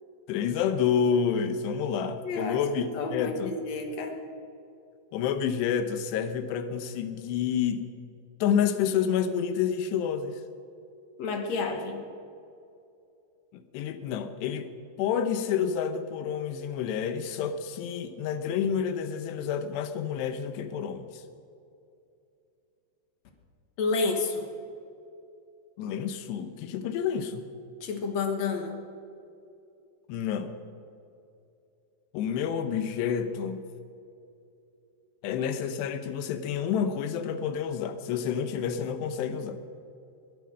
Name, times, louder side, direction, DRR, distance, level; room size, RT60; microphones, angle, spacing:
voice 1, 0.3-3.5 5.1-7.9 8.4-10.4 13.5-14.7 15.0-21.2 25.8-27.5 30.1-30.6 32.1-33.6 35.2-39.6, left 7 dB, 85° left, 10 dB, 3.1 m, -29 dB
voice 2, 2.2-2.6 2.9-4.2 11.2-12.0 23.8-24.5 27.8-28.8, left 4 dB, 60° left, 4 dB, 2.0 m, -30 dB
21.0 x 10.0 x 6.3 m, 2.6 s
omnidirectional pair, 4.8 m